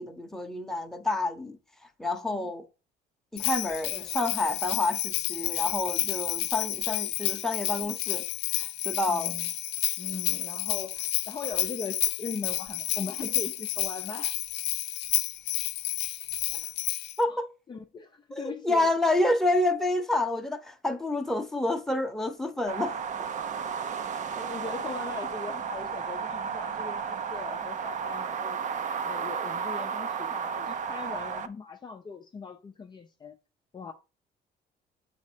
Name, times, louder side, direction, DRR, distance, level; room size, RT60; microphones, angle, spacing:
voice 1, 0.0-1.6 2.0-2.6 3.3-8.2 8.8-9.3 17.2-17.4 18.3-22.9, left 2 dB, ahead, 1.0 m, -28 dB
Bell, 3.4-17.2, left 15 dB, 90° left, 0.6 m, -31 dB
voice 2, 9.1-9.5 10.0-14.3 16.5-16.7 17.2-17.4 17.7-19.1 24.0-28.6 29.0-33.4 33.7-33.9, left 5 dB, 25° left, 0.6 m, -40 dB
sound 1, 22.7-31.5, right 6 dB, 45° right, 0.7 m, -33 dB
7.2 x 4.3 x 4.5 m
cardioid pair, 110°, 17 cm